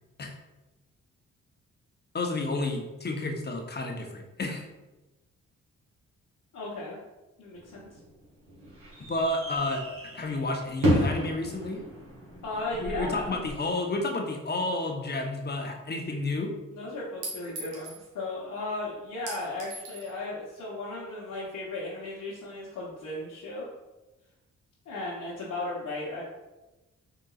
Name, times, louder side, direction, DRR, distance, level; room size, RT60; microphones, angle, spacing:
voice 1, 2.1-4.6 9.1-9.8 10.1-11.8 12.8-16.5, left 2 dB, 30° left, 2 dB, 0.8 m, -31 dB
voice 2, 6.5-7.0 7.4-7.9 12.4-13.4 16.7-23.7 24.9-26.2, left 2 dB, 60° left, -6 dB, 1.0 m, -36 dB
sound 1, 7.5-13.5, equal, 70° right, 1.5 m, -32 dB
Chink clink, 17.2-18.1 19.3-20.1, right 2 dB, 90° right, 0.8 m, -40 dB
3.9 x 3.6 x 2.4 m, 1.1 s
hypercardioid pair, 40°, 35 cm